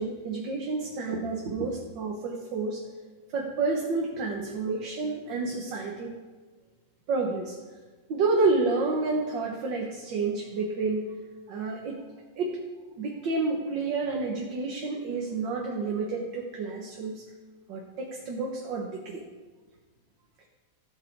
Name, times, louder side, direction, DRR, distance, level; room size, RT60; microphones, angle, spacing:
voice 1, 0.0-2.8 3.3-6.1 7.1-7.6 8.1-11.1 11.5-12.0 12.4-12.6 12.9-17.2 17.7-19.3, right 3 dB, 65° right, 0 dB, 1.9 m, -29 dB
15.0 x 7.5 x 4.7 m, 1.4 s
omnidirectional pair, 2.2 m